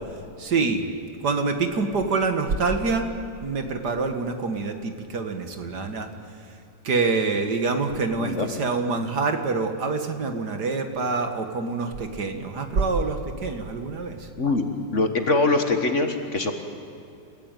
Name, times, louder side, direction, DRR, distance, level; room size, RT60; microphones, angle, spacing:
voice 1, 0.4-0.9 1.2-3.1 3.4-6.1 6.8-14.3, right 4 dB, 60° right, 6 dB, 2.3 m, -26 dB
voice 2, 14.9-16.5, left 3 dB, 40° left, 6 dB, 1.7 m, -23 dB
28.5 x 16.5 x 9.2 m, 2.7 s
omnidirectional pair, 2.0 m